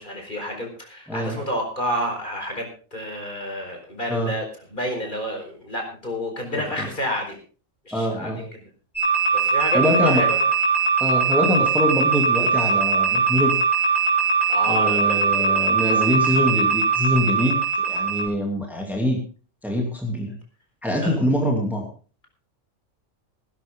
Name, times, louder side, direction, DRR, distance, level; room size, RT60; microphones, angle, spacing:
voice 1, 0.0-7.4 7.8-8.6 9.3-10.4 14.5-16.1 20.9-21.2, equal, 40° left, 2 dB, 4.7 m, -30 dB
voice 2, 7.9-8.4 9.7-10.3 11.0-13.6 14.7-17.6 17.9-19.2 19.6-20.3 20.8-21.8, left 1 dB, ahead, 0 dB, 2.7 m, -24 dB
sound 1, 9.0-18.3, right 5 dB, 20° left, 5.9 m, -21 dB
18.5 x 12.0 x 3.7 m, 0.37 s
omnidirectional pair, 1.3 m